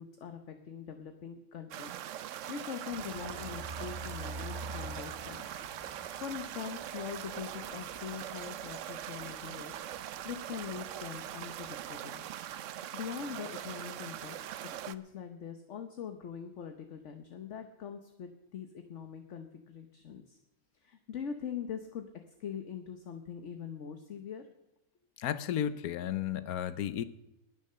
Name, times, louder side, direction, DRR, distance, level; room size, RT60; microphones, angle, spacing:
voice 1, 0.0-5.6 6.2-9.7 10.0-12.2 12.9-14.4 14.8-20.4 20.8-22.1 22.4-24.5, left 7 dB, 55° left, 6 dB, 1.3 m, -42 dB
sound 1, 1.7-15.0, right 11 dB, 65° right, 0.9 m, -42 dB
sound 2, 2.9-11.9, right 2 dB, 40° right, 0.3 m, -48 dB
voice 2, 25.2-27.0, left 10 dB, 85° left, 14 dB, 1.2 m, -33 dB
20.0 x 7.0 x 6.7 m, 0.89 s
omnidirectional pair, 1.5 m